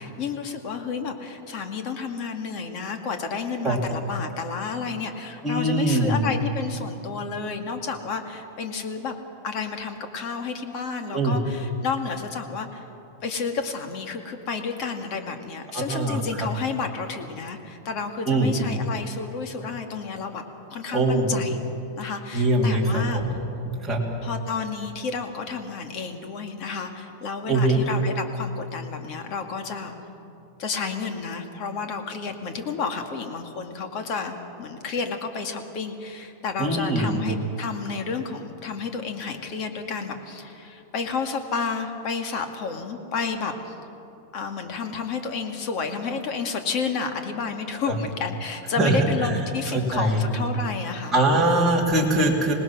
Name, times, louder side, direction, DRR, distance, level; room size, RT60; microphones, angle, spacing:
voice 1, 0.0-9.2 9.4-12.9 13.2-20.4 20.7-21.6 22.0-23.2 24.2-29.9 30.6-43.7 44.3-51.5, left 5 dB, 40° left, 5 dB, 2.0 m, -31 dB
voice 2, 5.4-6.2 11.1-11.4 15.7-16.5 18.2-18.5 20.9-21.4 22.3-23.3 23.8-24.0 27.5-27.8 36.6-37.2 47.9-48.0 48.8-49.4 49.7-50.2 51.1-52.5, right 1 dB, 5° right, -6 dB, 3.2 m, -22 dB
26.0 x 19.0 x 6.1 m, 2.7 s
supercardioid pair, 155°, 0 cm